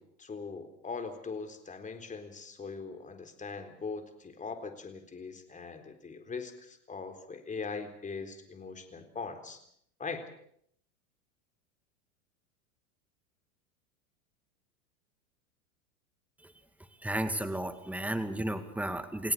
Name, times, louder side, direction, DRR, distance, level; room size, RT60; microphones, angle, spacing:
voice 1, 0.0-9.6 10.0-10.3, left 4 dB, 20° left, 7 dB, 4.0 m, -41 dB
voice 2, 17.0-19.3, right 1 dB, 5° right, 9 dB, 2.3 m, -33 dB
29.5 x 17.5 x 6.8 m, 0.67 s
hypercardioid pair, 100°, 41 cm